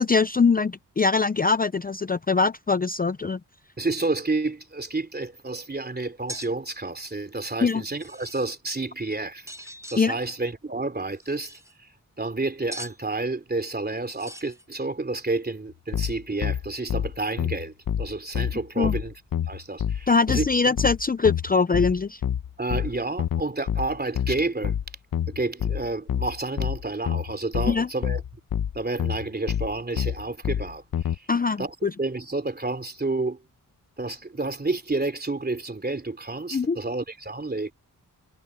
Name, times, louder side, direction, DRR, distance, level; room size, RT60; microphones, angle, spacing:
voice 1, 0.0-3.4 7.6-7.8 10.0-10.2 18.8-18.9 20.1-22.2 27.7-27.9 31.3-31.9 36.5-36.8, left 4 dB, 25° left, 0.6 m, -22 dB
voice 2, 3.8-9.5 9.9-11.6 12.2-19.1 19.5-20.5 22.6-24.7 25.3-28.2 28.7-31.2 31.6-33.4 34.0-37.7, right 3 dB, 30° right, 3.1 m, -30 dB
sound 1, 6.3-6.5 7.8-8.5 9.5-10.0 11.1-11.7 12.7-13.0 14.1-14.6, right 1 dB, 10° right, 1.7 m, -41 dB
sound 2, 15.9-31.2, left 9 dB, 75° left, 1.0 m, -27 dB
cardioid pair, 60°, 34 cm